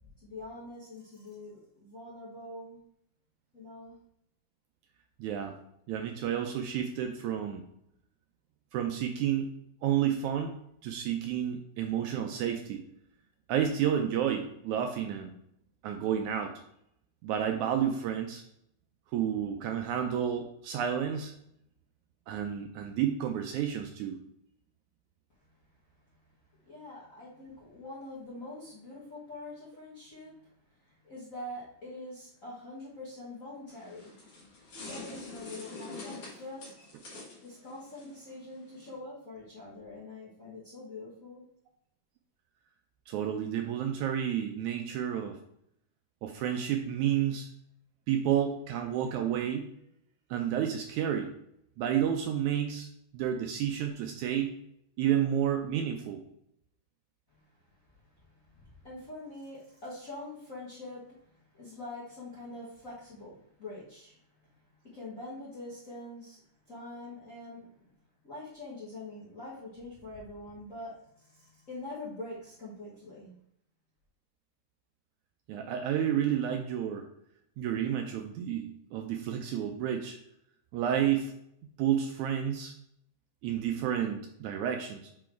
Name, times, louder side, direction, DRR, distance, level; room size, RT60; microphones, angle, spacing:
voice 1, 0.2-2.8 3.5-3.9 26.6-30.4 31.0-34.1 34.8-36.7 37.4-41.4 57.3-57.4 58.2-61.1 61.5-64.2 64.9-66.4 66.7-67.7 68.2-73.3, left 2 dB, 35° left, -8 dB, 1.3 m, -44 dB
voice 2, 5.2-5.6 5.9-7.6 8.7-9.5 9.8-10.5 10.8-12.8 13.5-15.3 15.8-16.5 17.2-18.4 19.1-21.3 22.3-24.2 43.1-45.4 46.2-47.5 48.1-49.6 50.3-51.3 51.8-52.9 53.1-54.6 55.0-56.2 75.5-77.1 77.6-80.2 80.7-81.3 81.8-82.7 83.4-85.1, right 9 dB, 80° right, 4 dB, 1.8 m, -30 dB
sound 1, 33.7-38.9, left 3 dB, 55° left, 2.1 m, -46 dB
5.5 x 4.2 x 4.4 m, 0.73 s
omnidirectional pair, 3.7 m